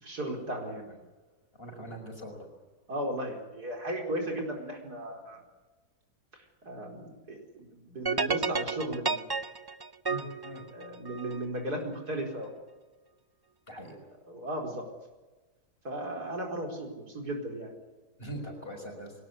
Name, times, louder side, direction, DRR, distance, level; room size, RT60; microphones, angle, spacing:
voice 1, 0.0-1.0 2.9-5.4 6.6-7.0 7.3-9.4 10.7-12.5 14.3-14.8 15.8-17.8, right 1 dB, 75° right, 2 dB, 5.2 m, -36 dB
voice 2, 1.6-2.5 10.1-10.6 13.7-13.9 18.2-19.1, right 1 dB, 35° left, 2 dB, 6.2 m, -42 dB
sound 1, 8.1-11.4, right 4 dB, 35° right, 0.3 m, -31 dB
21.5 x 19.0 x 9.6 m, 1.2 s
omnidirectional pair, 1.7 m